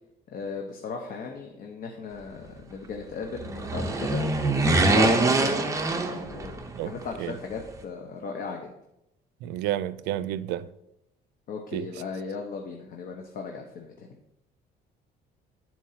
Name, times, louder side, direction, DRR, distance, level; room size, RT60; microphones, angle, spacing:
voice 1, 0.3-4.2 4.7-5.6 6.1-8.7 11.5-14.1, left 4 dB, 55° left, 0.9 m, -37 dB
sound 1, 3.3-6.8 7.0-7.1, right 2 dB, 20° right, 0.8 m, -24 dB
voice 2, 9.4-10.7 11.7-11.9, right 12 dB, 90° right, 0.4 m, -30 dB
12.0 x 4.5 x 2.8 m
cardioid pair, 110°, 17 cm